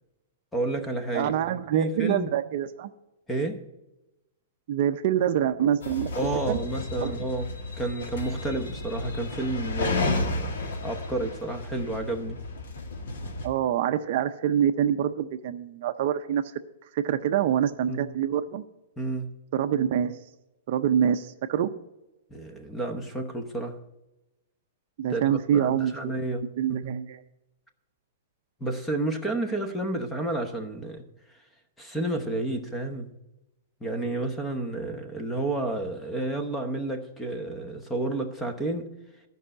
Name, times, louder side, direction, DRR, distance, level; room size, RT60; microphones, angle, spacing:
voice 1, 0.5-1.3 1.7-2.3 3.3-3.6 6.1-12.4 17.9-18.1 19.0-19.3 22.3-23.8 25.1-26.4 26.7-27.0 28.6-31.0 31.8-33.1 33.8-38.9, right 2 dB, 5° left, 7 dB, 0.9 m, -31 dB
voice 2, 1.1-2.9 4.7-6.1 6.5-6.6 7.0-7.2 13.4-16.4 16.9-18.6 19.5-20.2 20.7-21.7 25.0-26.3 26.6-27.2, right 9 dB, 45° right, 9 dB, 0.5 m, -25 dB
sound 1, 5.8-13.5, left 2 dB, 70° left, 1.8 m, -32 dB
12.5 x 5.5 x 7.8 m, 0.95 s
supercardioid pair, 170°, 0 cm